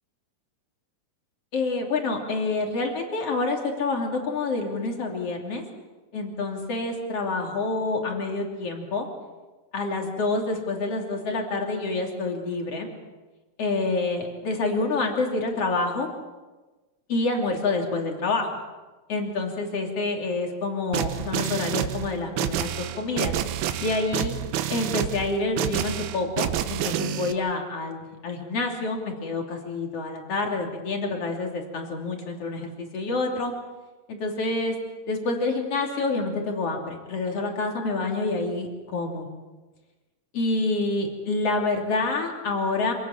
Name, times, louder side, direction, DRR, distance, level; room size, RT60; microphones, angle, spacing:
voice 1, 1.5-5.6 6.1-9.1 9.7-12.9 13.6-16.1 17.1-18.5 19.1-23.3 23.8-24.3 24.7-33.5 34.1-34.8 35.1-39.3 40.3-42.9, left 3 dB, 40° left, 2 dB, 3.6 m, -27 dB
sound 1, 20.9-27.3, right 10 dB, 75° right, 2.6 m, -28 dB
26.5 x 18.0 x 7.3 m, 1.2 s
omnidirectional pair, 4.6 m